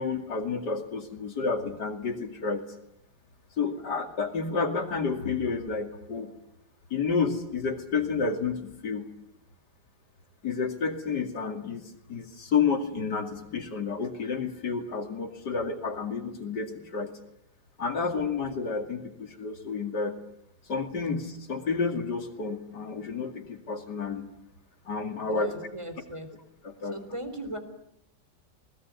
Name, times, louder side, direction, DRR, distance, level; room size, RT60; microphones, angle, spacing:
voice 1, 0.0-2.6 3.6-6.3 6.9-9.1 10.4-11.8 12.1-17.1 17.8-20.1 20.7-24.3 24.9-25.5 26.6-27.0, left 5 dB, 65° left, 6 dB, 3.0 m, -30 dB
voice 2, 25.3-26.3 26.8-27.6, right 1 dB, 15° right, 8 dB, 3.6 m, -38 dB
28.5 x 20.0 x 9.5 m, 0.80 s
omnidirectional pair, 2.0 m